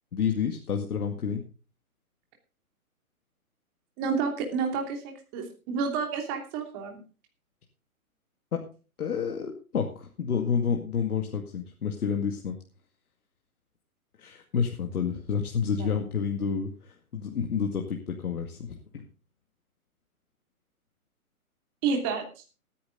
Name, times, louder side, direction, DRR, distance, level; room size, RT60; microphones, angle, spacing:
voice 1, 0.1-1.4 8.5-8.6 9.0-12.6 14.2-18.6 18.9-19.0, left 6 dB, 80° left, 2 dB, 2.3 m, -29 dB
voice 2, 4.0-7.0 15.8-15.9 21.8-22.2, right 5 dB, 25° right, 3 dB, 2.9 m, -30 dB
17.5 x 10.0 x 3.9 m, 0.35 s
hypercardioid pair, 155°, 44 cm